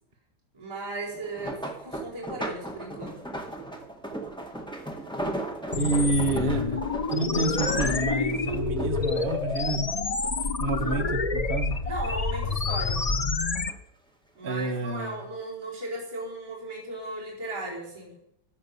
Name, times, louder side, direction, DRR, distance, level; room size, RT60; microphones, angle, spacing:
voice 1, 0.5-3.2 5.9-6.4 10.7-11.1 11.8-13.1 14.3-18.2, right 2 dB, 15° right, 4.8 m, -37 dB
sound 1, 1.1-10.7 11.1-12.0 12.4-13.8 14.5-14.8 15.2-15.3, right 1 dB, 5° left, 1.8 m, -37 dB
sound 2, 5.7-13.7, left 4 dB, 60° left, 0.4 m, -28 dB
voice 2, 5.7-6.8 7.1-9.9 10.6-11.8 14.4-15.1, right 3 dB, 30° right, 1.4 m, -28 dB
14.5 x 11.0 x 6.9 m
omnidirectional pair, 2.0 m